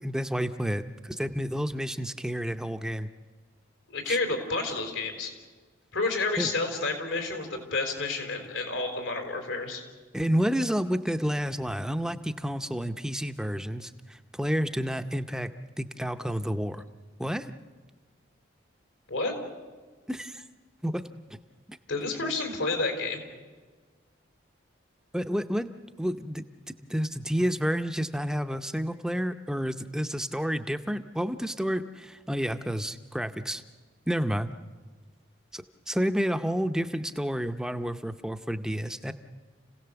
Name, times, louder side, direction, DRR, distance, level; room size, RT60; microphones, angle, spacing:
voice 1, 0.0-3.1 4.1-4.2 6.4-6.5 10.1-15.5 15.8-16.8 17.2-17.5 20.1-20.4 20.8-21.0 21.3-21.4 21.7-21.8 25.1-26.4 26.9-33.6 34.1-34.5 35.5-39.1, equal, 5° right, 8 dB, 0.6 m, -30 dB
voice 2, 3.9-5.3 5.9-9.8 19.1-19.3 21.9-23.2, left 3 dB, 85° left, 5 dB, 4.1 m, -30 dB
30.0 x 17.0 x 7.0 m, 1.4 s
head